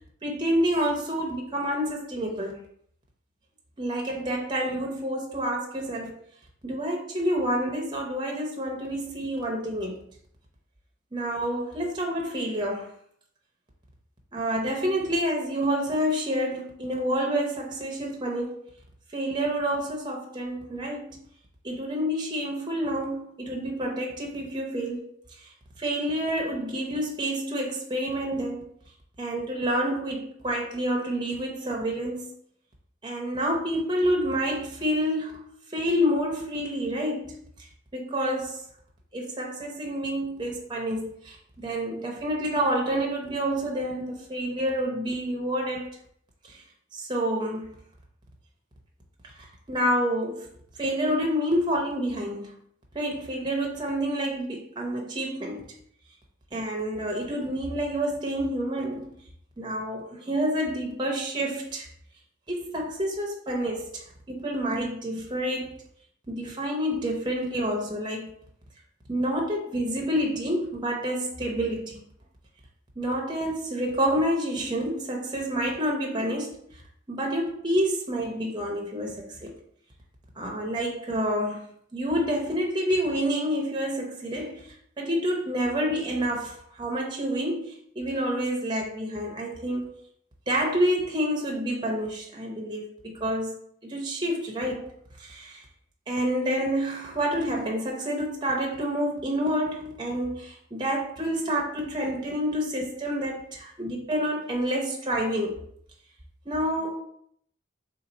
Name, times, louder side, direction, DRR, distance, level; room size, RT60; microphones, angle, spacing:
voice 1, 0.2-2.6 3.8-6.1 6.6-10.0 11.1-12.9 14.3-18.6 19.1-21.2 21.6-25.1 25.4-28.6 29.2-32.3 33.0-35.4 35.7-38.6 39.1-45.9 46.5-46.6 46.9-47.7 49.2-50.5 50.8-52.5 52.9-55.6 56.5-59.1 59.6-61.9 62.5-65.8 66.3-68.3 69.1-72.0 73.0-76.5 77.1-79.5 80.4-81.7 81.9-84.7 85.0-89.9 90.5-93.6 93.8-94.8 95.2-95.6 96.1-105.6 106.5-107.0, equal, 25° right, 0 dB, 0.7 m, -28 dB
3.8 x 2.8 x 4.0 m, 0.67 s
head